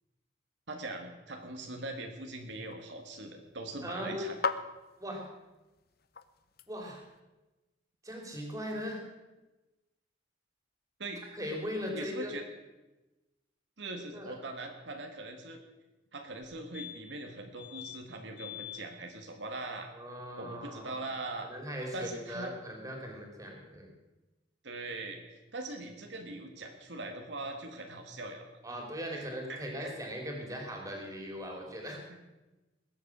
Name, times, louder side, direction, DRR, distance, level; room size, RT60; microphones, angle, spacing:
voice 1, 0.7-4.4 11.0-11.2 11.9-12.4 13.8-15.6 16.1-19.9 20.4-21.5 21.9-22.5 24.6-28.5 29.5-30.0 31.8-32.2, right 2 dB, 75° right, 3 dB, 1.7 m, -41 dB
sound 1, 1.4-7.2, left 4 dB, 55° left, 0.8 m, -42 dB
voice 2, 3.8-4.3 5.0-5.2 6.7-7.0 8.0-9.0 11.3-12.3 14.1-14.4 19.9-21.0 21.4-23.9 28.6-32.0, equal, 20° right, 1 dB, 3.1 m, -39 dB
sound 2, 16.4-16.5 16.7-17.2 17.6-18.0 18.4-18.8 21.2-21.3 21.5-21.6, left 12 dB, 30° left, 4.1 m, -44 dB
20.0 x 8.3 x 6.1 m, 1.1 s
head